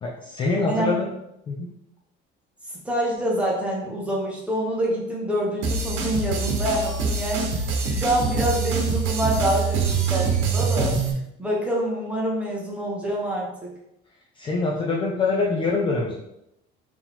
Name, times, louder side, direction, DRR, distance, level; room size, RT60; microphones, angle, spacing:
voice 1, 0.0-1.1 1.5-1.7 14.4-16.2, left 3 dB, 25° left, -2 dB, 0.4 m, -24 dB
voice 2, 0.6-0.9 2.8-7.6 7.9-11.0 11.4-13.7, equal, 5° right, -3 dB, 0.8 m, -26 dB
sound 1, 5.6-11.1, right 4 dB, 75° right, 1.0 m, -24 dB
4.3 x 2.9 x 3.6 m, 0.83 s
cardioid pair, 175°, 21 cm